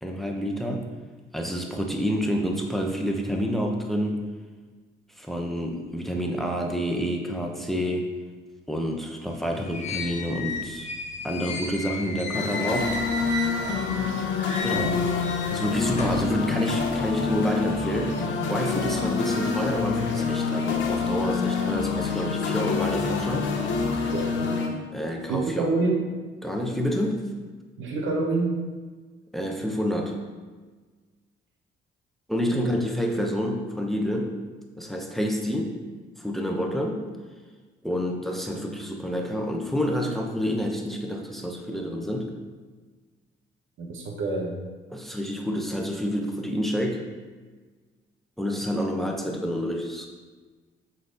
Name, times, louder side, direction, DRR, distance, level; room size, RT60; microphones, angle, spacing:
voice 1, 0.0-0.9 1.3-4.2 5.2-8.1 8.7-10.9 11.2-13.0 14.6-15.0 15.5-18.2 18.5-23.5 24.9-25.7 26.4-27.3 29.3-30.2 32.3-34.3 34.8-35.8 36.2-37.0 37.8-42.3 44.9-47.0 48.4-50.1, equal, ahead, 1 dB, 0.9 m, -28 dB
sound 1, 9.3-14.0 14.3-16.3, left 3 dB, 35° left, 1.1 m, -34 dB
sound 2, 12.3-24.7, left 5 dB, 75° left, 0.9 m, -27 dB
voice 2, 24.1-24.6 25.3-26.1 27.8-28.6 32.5-32.9 43.8-44.6, right 3 dB, 80° right, 1 dB, 1.1 m, -27 dB
7.6 x 4.0 x 3.9 m, 1.4 s
cardioid pair, 90°, 20 cm